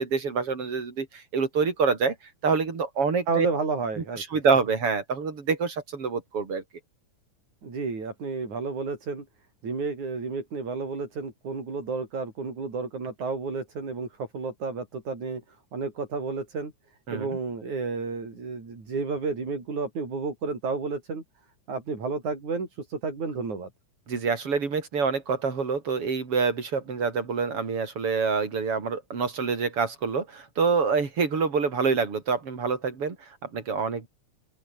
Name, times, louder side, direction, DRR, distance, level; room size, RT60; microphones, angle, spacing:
voice 1, 0.0-2.2 2.4-3.5 4.2-6.6 17.1-17.4 24.1-34.1, right 5 dB, 50° right, 4.5 m, -26 dB
voice 2, 3.3-4.4 7.6-9.3 9.6-15.4 15.7-16.7 17.1-21.2 21.7-23.7, right 4 dB, 80° right, 7.4 m, -31 dB
open air
omnidirectional pair, 3.3 m